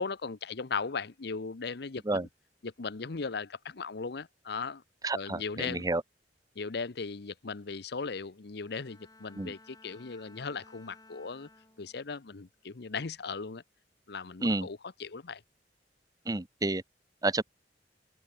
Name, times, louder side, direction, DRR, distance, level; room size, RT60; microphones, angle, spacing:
voice 1, 0.0-2.3 2.6-4.8 5.1-5.9 6.6-11.5 11.8-13.6 14.1-15.4, left 4 dB, 65° left, 0.8 m, -37 dB
voice 2, 5.0-6.0 9.4-9.5 14.4-14.7 16.3-16.8 17.2-17.4, right 2 dB, 20° right, 0.9 m, -30 dB
Bowed string instrument, 8.6-12.2 12.7-13.1, left 2 dB, 20° left, 6.3 m, -58 dB
open air
head